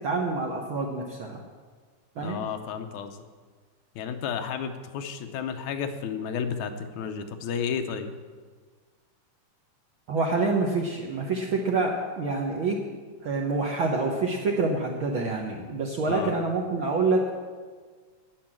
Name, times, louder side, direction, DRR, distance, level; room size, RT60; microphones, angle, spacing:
voice 1, 0.0-1.4 2.2-2.4 10.1-12.8 13.2-17.3, right 3 dB, 60° right, 0 dB, 1.3 m, -27 dB
voice 2, 2.2-3.2 4.0-8.1 16.1-16.3, left 7 dB, 75° left, 7 dB, 2.1 m, -32 dB
10.0 x 10.0 x 7.5 m, 1.5 s
omnidirectional pair, 3.6 m